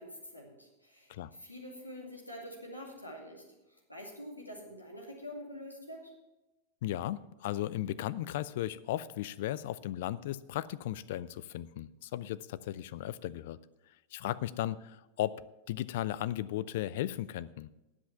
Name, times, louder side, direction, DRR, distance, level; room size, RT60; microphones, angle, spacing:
voice 1, 0.0-3.4 3.7-6.1, equal, 85° left, -1 dB, 2.4 m, -46 dB
voice 2, 6.8-13.6 14.1-15.4 15.7-17.7, left 13 dB, 55° left, 17 dB, 0.4 m, -36 dB
9.7 x 7.9 x 7.2 m, 1.0 s
figure-of-eight pair, 90°, 0 cm